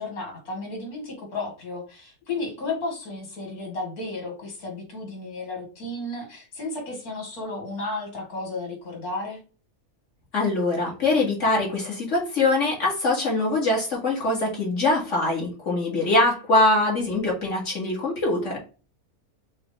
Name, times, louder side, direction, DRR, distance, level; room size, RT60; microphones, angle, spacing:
voice 1, 0.0-9.4, left 2 dB, 85° left, 1 dB, 2.3 m, -33 dB
voice 2, 10.3-18.6, left 2 dB, 55° left, -2 dB, 2.2 m, -23 dB
6.1 x 2.5 x 3.2 m, 0.35 s
omnidirectional pair, 1.5 m